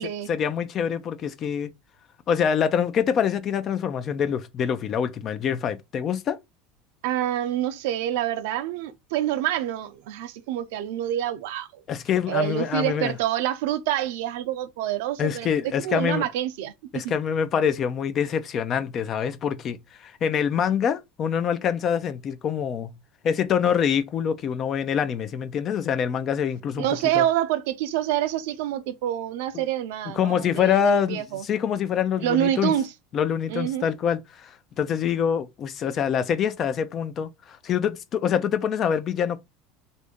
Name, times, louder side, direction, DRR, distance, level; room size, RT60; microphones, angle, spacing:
voice 1, 0.3-1.7 2.3-6.4 11.9-13.1 15.2-16.3 16.9-22.9 23.2-26.9 27.1-27.2 29.5-29.6 30.1-32.7 33.1-39.4, left 8 dB, 40° left, 0.4 m, -25 dB
voice 2, 7.0-11.8 12.3-15.5 15.8-17.1 26.8-31.4 32.2-32.9 33.5-33.9, right 12 dB, 75° right, 0.5 m, -27 dB
2.6 x 2.5 x 3.5 m
supercardioid pair, 120°, 0 cm